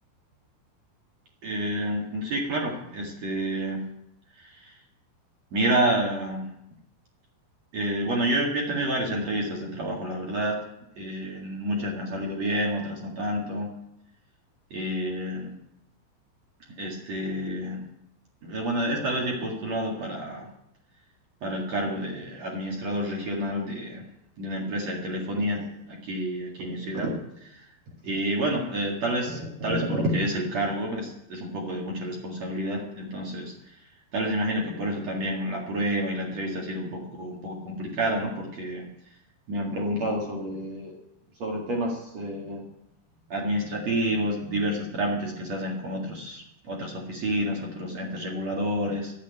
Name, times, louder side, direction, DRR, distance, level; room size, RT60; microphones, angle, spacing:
voice 1, 1.4-3.8 4.4-4.8 5.5-6.5 7.7-10.6 11.0-13.7 14.7-15.5 16.8-17.8 18.4-20.5 21.4-24.0 24.4-27.1 27.4-27.6 28.0-33.5 34.1-38.9 39.5-40.9 41.4-42.7 43.3-49.1, right 1 dB, 45° right, -1 dB, 2.4 m, -29 dB
13.5 x 8.4 x 9.4 m, 0.81 s
omnidirectional pair, 5.6 m